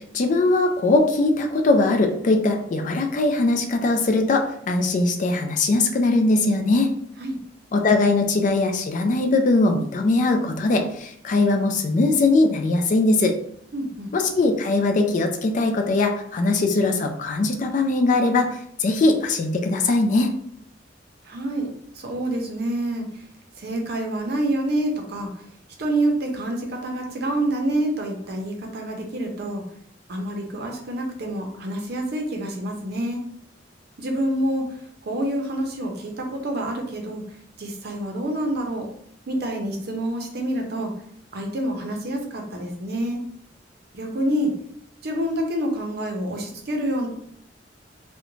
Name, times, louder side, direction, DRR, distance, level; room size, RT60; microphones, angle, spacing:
voice 1, 0.1-6.9 7.7-13.3 14.1-18.5 18.8-20.3, left 2 dB, 45° left, 4 dB, 0.3 m, -20 dB
voice 2, 13.7-14.1 21.2-23.2 23.6-25.3 25.8-29.6 30.1-33.2 34.0-34.7 35.0-37.2 37.6-38.9 39.3-40.9 41.3-43.2 43.9-44.5 45.0-47.1, right 1 dB, 60° right, 2 dB, 0.6 m, -27 dB
2.5 x 2.1 x 3.0 m, 0.66 s
head